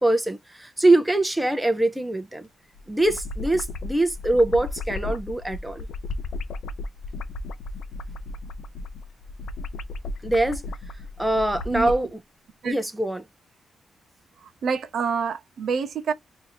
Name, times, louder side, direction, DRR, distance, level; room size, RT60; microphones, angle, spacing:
voice 1, 0.0-2.5 2.9-5.9 10.2-10.6 11.2-12.2 12.6-13.3, right 2 dB, 5° right, 0.5 m, -23 dB
sound 1, 2.7-12.0, left 2 dB, 80° left, 0.6 m, -34 dB
voice 2, 14.4-16.1, right 6 dB, 65° right, 0.7 m, -27 dB
2.7 x 2.5 x 4.2 m
wide cardioid pair, 150°, 0 cm